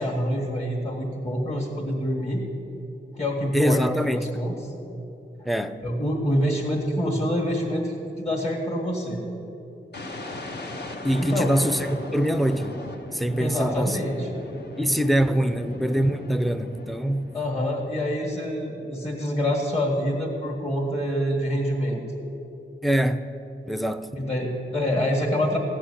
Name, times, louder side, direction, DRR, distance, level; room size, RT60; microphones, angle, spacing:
voice 1, 0.0-2.4 3.2-4.7 5.8-9.2 11.1-11.5 13.4-14.3 15.3-15.5 17.3-22.0 24.2-25.6, equal, 30° left, 1.7 m, -26 dB
voice 2, 3.5-4.5 5.4-5.8 11.0-12.8 13.1-14.0 14.8-17.4 22.8-23.2 23.7-24.1, equal, ahead, 0.5 m, -24 dB
sound 1, 9.9-17.8, left 2 dB, 60° left, 1.2 m, -38 dB
15.5 x 6.2 x 9.7 m
wide cardioid pair, 120°, 20 cm